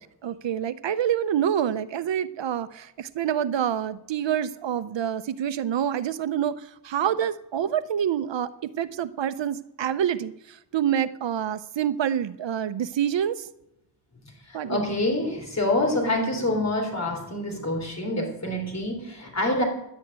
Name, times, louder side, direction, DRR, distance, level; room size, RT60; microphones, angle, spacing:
voice 1, 0.2-13.5 14.5-14.8, right 9 dB, 70° right, 14 dB, 0.7 m, -27 dB
voice 2, 14.5-19.6, left 1 dB, 35° left, 1 dB, 3.6 m, -26 dB
11.0 x 9.1 x 8.7 m, 0.85 s
wide cardioid pair, 130°, 45 cm